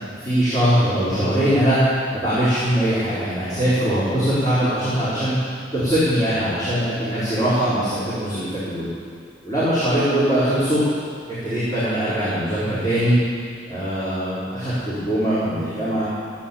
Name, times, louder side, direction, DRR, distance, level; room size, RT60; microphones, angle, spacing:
voice 1, 0.2-1.8 2.1-5.3 5.7-8.9 9.4-10.8 11.3-13.2 13.7-16.0, equal, 20° left, -14 dB, 4.6 m, -21 dB
15.5 x 9.1 x 7.2 m, 2.1 s
head